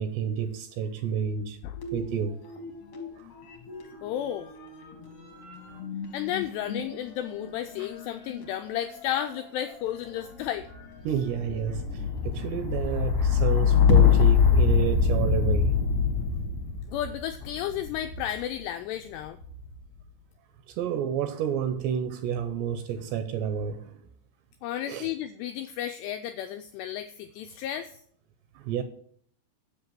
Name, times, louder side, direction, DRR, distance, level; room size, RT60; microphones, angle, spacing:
voice 1, 0.0-1.6 1.9-2.4 3.2-3.3 3.9-4.0 7.8-7.9 11.0-15.7 20.7-24.0 24.9-25.1 28.6-28.8, right 8 dB, 80° right, 2.6 m, -30 dB
sound 1, 1.8-3.1 3.4-18.4 19.2-19.8, left 6 dB, 55° left, 2.5 m, -26 dB
voice 2, 4.0-4.5 6.1-10.7 16.9-19.4 24.6-28.0, left 11 dB, 85° left, 2.4 m, -33 dB
8.1 x 6.9 x 7.6 m
omnidirectional pair, 5.3 m